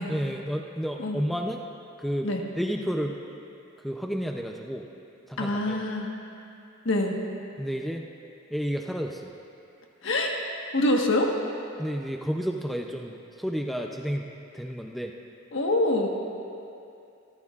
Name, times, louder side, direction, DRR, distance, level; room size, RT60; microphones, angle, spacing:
voice 1, 0.1-1.6 2.0-2.3 2.6-3.2 3.8-4.9 5.3-5.8 7.6-8.0 8.5-9.3 11.8-14.3 14.5-15.1, equal, ahead, 1 dB, 0.5 m, -31 dB
voice 2, 5.4-6.1 6.8-7.1 10.0-10.3 10.7-11.3 15.5-16.1, left 1 dB, 65° left, 1 dB, 1.4 m, -25 dB
26.0 x 13.5 x 2.5 m, 2.7 s
head